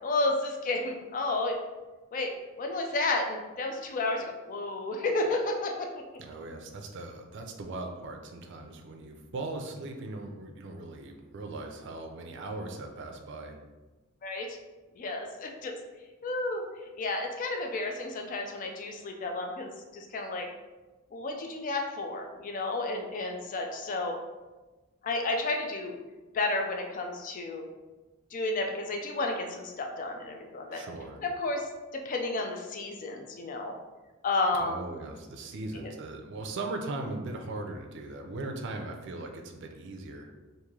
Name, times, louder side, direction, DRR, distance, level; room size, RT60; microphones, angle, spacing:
voice 1, 0.0-1.6 2.1-2.3 2.6-5.9 14.2-14.6 15.0-15.7 16.2-16.6 17.0-20.5 21.1-24.2 25.0-25.9 26.3-27.7 28.3-30.8 31.2-31.7 31.9-33.7 34.2-34.8 35.7-35.9, left 2 dB, 40° left, 3 dB, 0.4 m, -31 dB
voice 2, 6.2-13.6 30.7-31.2 34.6-40.3, right 2 dB, 60° right, 3 dB, 0.4 m, -39 dB
3.1 x 2.6 x 3.6 m, 1.2 s
head